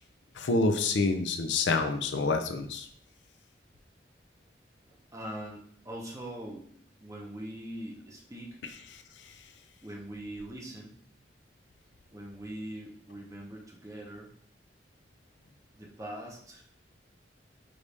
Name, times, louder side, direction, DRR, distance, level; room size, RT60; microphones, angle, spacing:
voice 1, 0.4-2.9, left 3 dB, 85° left, 7 dB, 0.5 m, -27 dB
voice 2, 4.9-6.7 7.0-8.6 9.8-11.0 12.1-14.3 15.7-16.6, right 1 dB, 15° right, -1 dB, 0.8 m, -42 dB
4.9 x 2.6 x 3.3 m, 0.63 s
head